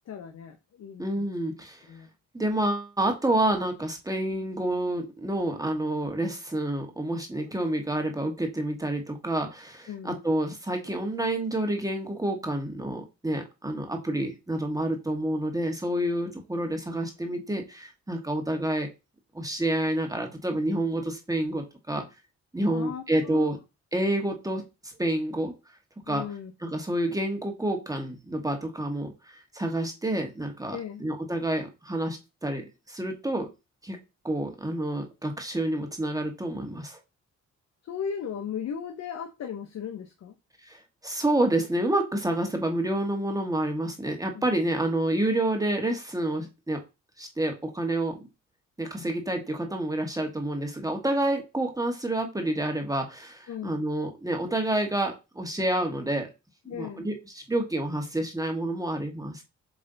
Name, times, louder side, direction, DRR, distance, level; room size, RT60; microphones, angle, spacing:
voice 1, 0.1-1.3 1.9-2.1 9.9-10.3 22.6-23.5 26.1-26.7 30.7-31.0 37.8-40.3 44.3-44.5 49.0-49.1 53.5-53.8 56.7-57.1, left 7 dB, 60° left, 1.0 m, -37 dB
voice 2, 1.0-1.8 2.3-18.9 19.3-22.0 22.5-23.6 23.9-25.5 26.1-26.3 26.6-33.5 33.8-34.0 34.2-37.0 40.7-46.8 47.2-48.2 48.8-56.3 56.7-59.4, right 1 dB, 10° right, 1.6 m, -29 dB
7.7 x 3.4 x 4.0 m
cardioid pair, 90°, 30 cm